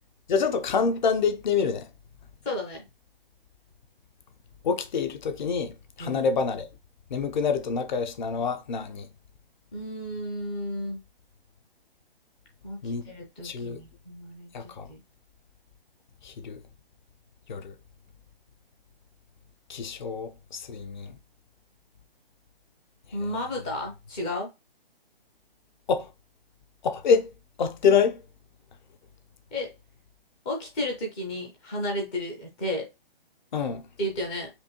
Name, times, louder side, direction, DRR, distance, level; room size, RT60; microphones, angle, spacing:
voice 1, 0.3-1.9 4.6-6.7 7.1-9.1 12.8-13.0 13.4-13.8 14.5-14.9 16.2-16.6 17.5-17.7 19.7-21.1 25.9-26.1 26.8-27.3 27.6-28.2 33.5-33.8, left 5 dB, 50° left, 0.9 m, -26 dB
voice 2, 2.4-2.8 6.0-6.3 9.7-11.0 12.6-12.8 13.1-14.5 14.9-15.0 23.1-24.5 29.5-29.7 30.4-32.9 34.0-34.5, left 1 dB, 5° left, 0.4 m, -32 dB
5.1 x 2.6 x 3.0 m
hypercardioid pair, 150°, 30 cm